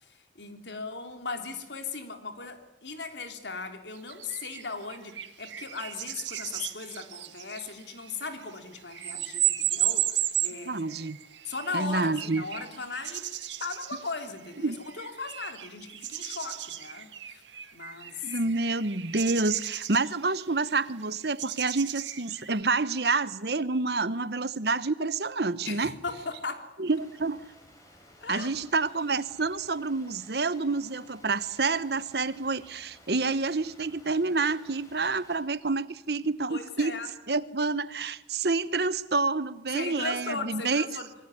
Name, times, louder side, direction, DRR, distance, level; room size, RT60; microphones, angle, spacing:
voice 1, 0.4-10.1 10.4-11.1 11.4-13.2 13.6-17.4 17.7-18.2 25.6-26.7 28.2-28.5 36.5-37.1 39.7-41.1, left 4 dB, 75° left, 6 dB, 3.5 m, -37 dB
sound 1, 3.9-22.6, right 12 dB, 90° right, 2.0 m, -35 dB
voice 2, 10.7-11.2 11.7-12.4 14.6-14.8 18.2-25.9 26.8-27.5 28.3-36.9 37.3-40.9, right 3 dB, 60° right, 16 dB, 1.0 m, -28 dB
sound 2, 26.8-35.4, left 1 dB, 20° left, 6.0 m, -56 dB
25.5 x 22.5 x 10.0 m, 0.92 s
head